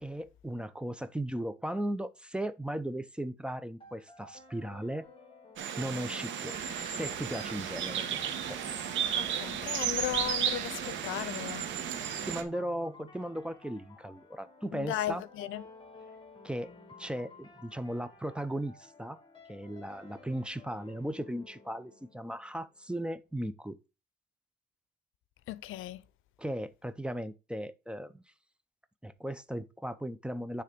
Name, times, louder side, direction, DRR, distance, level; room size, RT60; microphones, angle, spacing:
voice 1, 0.0-5.1 5.8-6.5 6.9-8.6 12.2-15.2 16.4-16.7 17.0-19.2 19.5-23.8 26.4-28.2 29.0-30.6, right 1 dB, 5° right, 0.6 m, -37 dB
sound 1, 3.8-22.8, left 2 dB, 25° left, 2.2 m, -54 dB
sound 2, 5.6-12.4, right 8 dB, 75° right, 1.2 m, -34 dB
sound 3, 6.5-12.5, right 7 dB, 40° right, 0.7 m, -47 dB
voice 2, 9.2-11.6 14.7-15.6 25.5-26.0, left 13 dB, 85° left, 0.6 m, -36 dB
9.6 x 3.4 x 5.1 m
cardioid pair, 90°, 20 cm